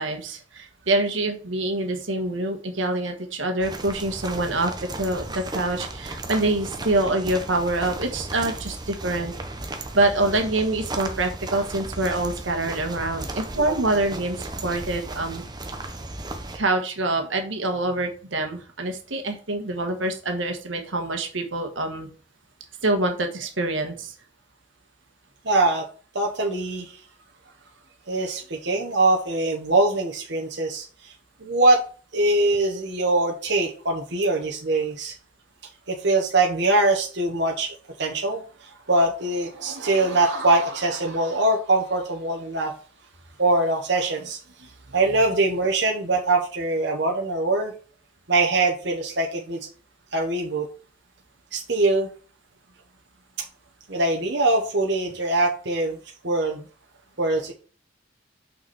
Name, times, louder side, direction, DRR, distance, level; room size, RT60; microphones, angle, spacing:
voice 1, 0.0-4.7 5.0-9.3 9.9-15.4 16.5-22.1 22.8-24.1, right 2 dB, 80° right, 5 dB, 1.5 m, -25 dB
sound 1, 3.6-16.6, right 2 dB, 20° right, 0.9 m, -35 dB
voice 2, 25.4-25.8 26.1-27.0 28.1-31.1 31.4-31.8 32.1-35.1 35.9-37.7 38.0-42.7 43.4-44.4 44.9-47.7 48.3-49.6 50.1-50.7 51.5-52.1 53.9-56.0 56.2-56.6 57.2-57.5, right 2 dB, 60° right, 0 dB, 1.2 m, -22 dB
6.1 x 5.8 x 4.3 m, 0.39 s
head